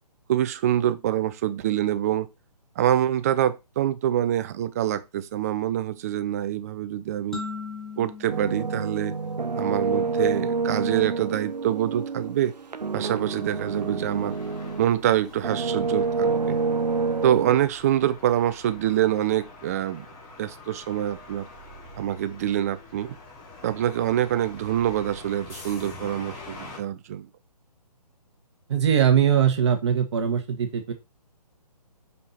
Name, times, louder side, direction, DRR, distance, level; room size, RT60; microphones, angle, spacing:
voice 1, 0.3-2.3 2.8-7.4 8.0-9.2 9.6-12.5 12.9-14.4 14.8-16.6 17.2-20.1 20.4-21.5 22.0-23.2 23.6-27.3, right 11 dB, 25° right, 0.5 m, -25 dB
sound 1, 7.3-10.0, left 4 dB, ahead, 1.1 m, -39 dB
sound 2, 8.3-15.0 15.4-17.6, right 4 dB, 90° right, 0.8 m, -28 dB
sound 3, 13.6-26.8, left 2 dB, 25° left, 3.1 m, -45 dB
voice 2, 28.7-30.9, right 8 dB, 45° right, 1.4 m, -21 dB
5.7 x 5.1 x 4.2 m
figure-of-eight pair, 145°, 21 cm